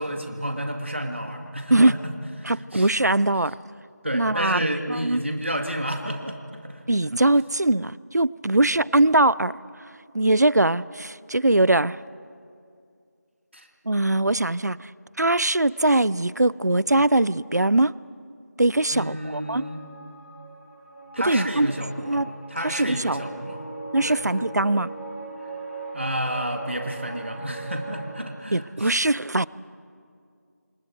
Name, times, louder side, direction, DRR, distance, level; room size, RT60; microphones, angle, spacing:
voice 1, 0.0-2.0 2.4-2.9 4.0-6.8 13.5-13.7 18.9-19.8 21.1-22.2 22.5-23.7 24.0-24.3 25.9-29.0, equal, 45° right, 4 dB, 2.2 m, -30 dB
voice 2, 2.4-3.5 4.1-4.6 4.9-5.2 6.9-9.5 10.1-12.0 13.9-14.9 15.2-17.9 18.6-19.6 21.2-21.7 22.0-22.3 22.6-23.2 23.9-24.9 28.5-29.5, right 2 dB, 75° right, 21 dB, 0.5 m, -21 dB
sound 1, 19.2-28.1, right 3 dB, 45° left, 5.3 m, -39 dB
30.0 x 27.5 x 4.6 m, 2.4 s
figure-of-eight pair, 180°, 9 cm